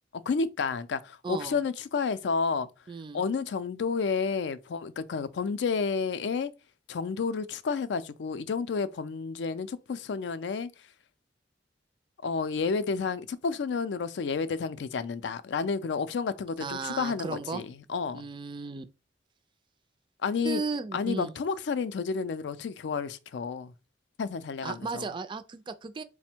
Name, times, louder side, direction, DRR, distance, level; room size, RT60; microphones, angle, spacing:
voice 1, 0.1-2.7 3.1-6.5 6.9-10.7 12.2-18.3 20.2-20.6 20.9-23.7 24.2-25.1, left 5 dB, 70° left, 0.4 m, -31 dB
voice 2, 1.2-1.6 2.9-3.2 16.6-17.6 18.1-18.8 20.4-21.3 24.6-26.0, right 4 dB, 25° right, 0.3 m, -35 dB
4.2 x 2.1 x 4.3 m
head